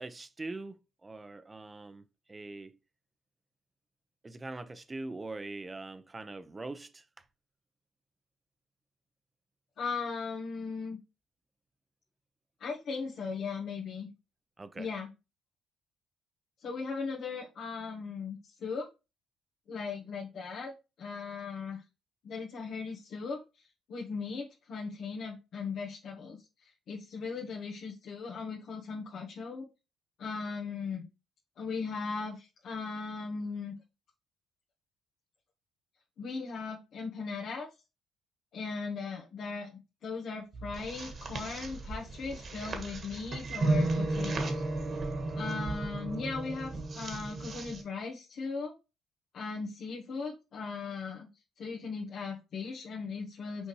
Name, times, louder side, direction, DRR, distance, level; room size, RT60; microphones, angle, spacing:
voice 1, 0.0-2.0 2.3-2.7 4.2-7.0 14.6-14.9, right 2 dB, 25° right, 0.8 m, -42 dB
voice 2, 9.8-11.0 12.6-14.1 14.8-15.1 16.6-18.9 19.7-20.7 21.0-21.8 22.2-23.4 23.9-29.7 30.2-31.1 31.6-33.8 36.2-37.7 38.5-39.7 40.0-44.6 45.3-48.7 49.3-51.3 51.6-53.7, left 4 dB, 60° left, 1.4 m, -38 dB
sound 1, 40.5-47.8, right 2 dB, 50° right, 1.7 m, -34 dB
6.2 x 5.1 x 3.2 m
hypercardioid pair, 50°, 0 cm